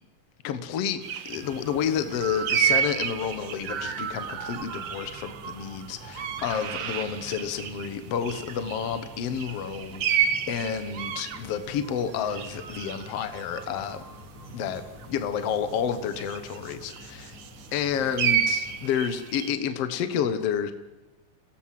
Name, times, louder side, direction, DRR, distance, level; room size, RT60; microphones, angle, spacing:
voice 1, 0.4-1.0 1.3-14.0 14.5-17.3 17.7-20.7, left 8 dB, 60° left, 10 dB, 2.1 m, -30 dB
sound 1, 1.0-7.9 8.2-15.0 16.1-17.7 18.1-19.5, right 8 dB, 55° right, 1.7 m, -31 dB
sound 2, 1.3-18.9, left 1 dB, 75° left, 6.6 m, -48 dB
27.5 x 17.5 x 7.6 m, 1.1 s
omnidirectional pair, 3.6 m